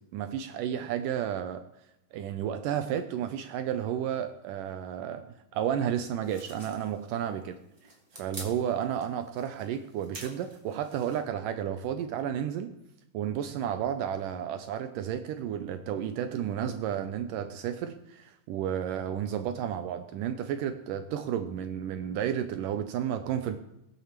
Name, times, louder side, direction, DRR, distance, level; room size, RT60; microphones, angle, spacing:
voice 1, 0.1-1.6 2.1-5.3 5.5-7.6 8.2-12.7 13.1-23.6, right 9 dB, 75° right, 8 dB, 2.2 m, -32 dB
sound 1, 6.2-11.2, right 1 dB, 10° right, 2.7 m, -48 dB
19.5 x 7.6 x 7.3 m, 0.85 s
omnidirectional pair, 4.1 m